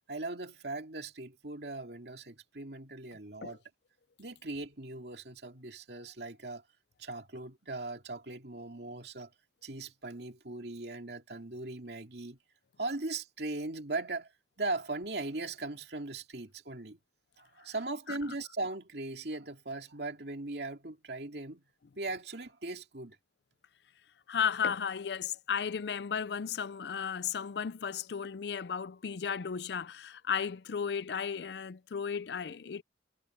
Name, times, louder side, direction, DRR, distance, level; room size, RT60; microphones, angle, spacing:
voice 1, 0.1-3.6 4.2-6.6 7.0-9.3 9.6-12.4 12.8-14.3 14.6-17.0 17.4-21.6 22.0-23.2, right 2 dB, 65° right, 2.6 m, -39 dB
voice 2, 24.3-32.8, left 7 dB, 65° left, 0.5 m, -34 dB
head